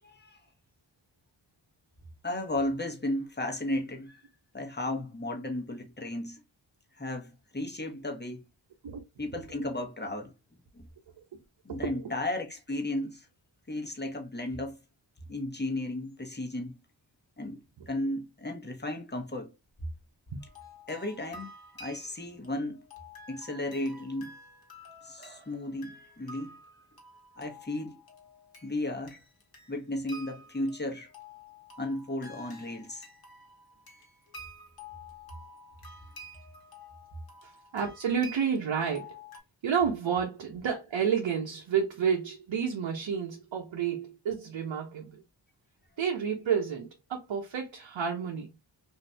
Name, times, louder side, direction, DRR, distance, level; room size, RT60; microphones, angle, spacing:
voice 1, 0.0-0.4 2.2-4.2 4.5-6.4 6.9-8.4 9.2-10.3 10.7-10.8 11.6-13.3 13.7-14.8 15.3-16.7 17.4-19.5 20.9-21.5 21.8-22.8 23.3-24.3 25.0-26.6 27.4-28.0 28.6-29.2 29.7-31.1 31.8-33.0, left 1 dB, 20° left, 1.1 m, -34 dB
sound 1, 20.4-39.4, left 2 dB, 50° left, 1.3 m, -50 dB
voice 2, 37.4-39.1 39.6-45.2 46.0-48.5, right 7 dB, 70° right, 0.8 m, -30 dB
2.7 x 2.5 x 3.3 m
cardioid pair, 45°, 46 cm